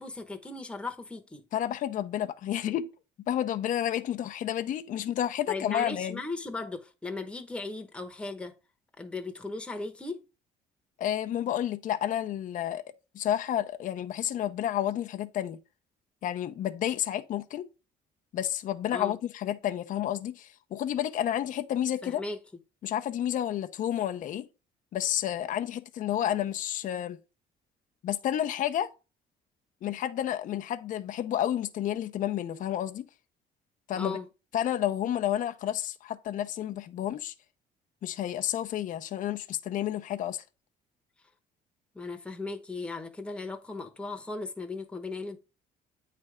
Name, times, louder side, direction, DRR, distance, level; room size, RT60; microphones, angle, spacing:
voice 1, 0.0-1.4 5.5-8.5 9.0-10.2 18.9-19.2 22.0-22.4 34.0-34.3 41.9-45.4, left 3 dB, 5° left, 0.9 m, -37 dB
voice 2, 1.5-2.9 3.3-6.2 11.0-12.8 13.1-15.6 16.2-17.7 18.3-22.2 22.8-24.5 24.9-27.2 28.0-28.9 29.8-33.1 33.9-34.2 34.5-37.3 38.0-40.4, left 11 dB, 50° left, 0.5 m, -30 dB
8.6 x 3.3 x 4.8 m
cardioid pair, 110°, 17 cm